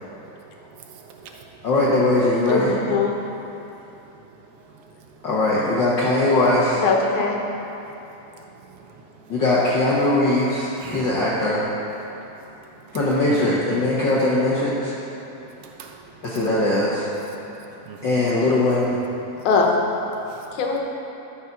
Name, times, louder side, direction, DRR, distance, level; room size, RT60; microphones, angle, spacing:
voice 1, 0.0-1.7 3.5-5.2 7.8-7.9 8.2-9.3 10.8-11.2 12.1-13.0 13.3-13.6 15.2-16.4 17.5-18.1 19.3-19.5 20.2-20.5, right 5 dB, 65° right, 2 dB, 1.6 m, -44 dB
voice 2, 1.6-2.7 5.2-6.8 9.3-11.6 12.9-14.9 16.2-17.1 18.0-19.0, left 2 dB, 60° left, -7 dB, 1.2 m, -20 dB
voice 3, 2.5-3.1 6.8-7.4 19.5-19.7 20.5-20.8, left 5 dB, 90° left, 0 dB, 2.5 m, -21 dB
12.5 x 5.4 x 5.9 m, 3.0 s
omnidirectional pair, 3.3 m